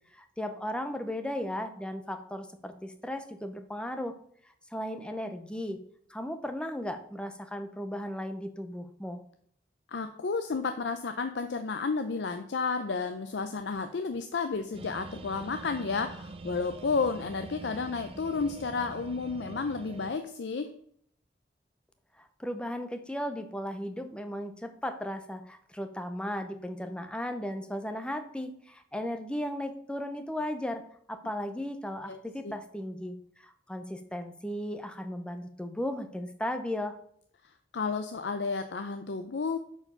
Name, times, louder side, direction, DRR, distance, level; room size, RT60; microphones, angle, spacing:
voice 1, 0.1-4.2 4.7-5.8 6.1-9.2 22.2-30.8 31.1-37.0, left 1 dB, 5° left, 8 dB, 0.6 m, -36 dB
voice 2, 9.9-20.7 32.1-32.2 32.4-32.5 37.7-39.6, left 4 dB, 80° left, 8 dB, 0.5 m, -32 dB
sound 1, 14.7-20.1, right 2 dB, 30° right, 0.6 m, -45 dB
6.9 x 4.7 x 5.5 m, 0.64 s
head